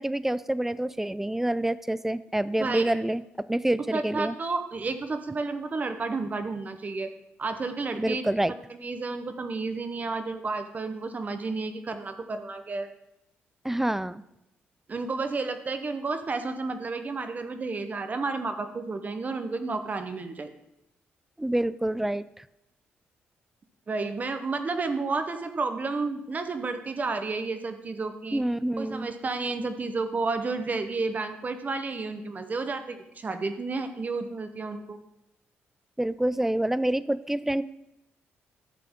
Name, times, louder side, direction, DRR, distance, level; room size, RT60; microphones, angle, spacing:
voice 1, 0.0-4.3 8.0-8.5 13.6-14.2 21.4-22.4 28.3-29.1 36.0-37.6, right 1 dB, 5° right, 17 dB, 0.4 m, -27 dB
voice 2, 3.9-7.1 7.4-8.4 8.7-12.9 14.9-20.5 23.9-28.4 28.8-35.0, right 3 dB, 40° right, 8 dB, 0.9 m, -31 dB
11.0 x 6.7 x 3.6 m, 0.85 s
cardioid pair, 80°, 4 cm